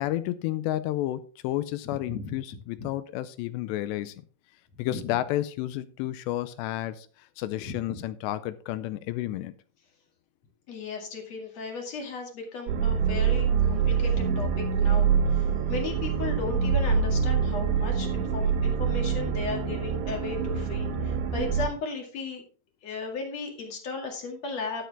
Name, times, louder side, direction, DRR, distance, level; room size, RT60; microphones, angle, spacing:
voice 1, 0.0-4.2 4.8-9.5, left 14 dB, 80° left, 14 dB, 2.6 m, -31 dB
voice 2, 1.8-2.4 2.8-2.9 4.8-5.0 7.7-8.0 10.7-22.4 22.8-24.9, left 4 dB, 45° left, 2 dB, 2.5 m, -36 dB
sound 1, 12.7-21.7, right 6 dB, 75° right, 3.1 m, -25 dB
11.5 x 9.0 x 3.3 m, 0.38 s
omnidirectional pair, 5.3 m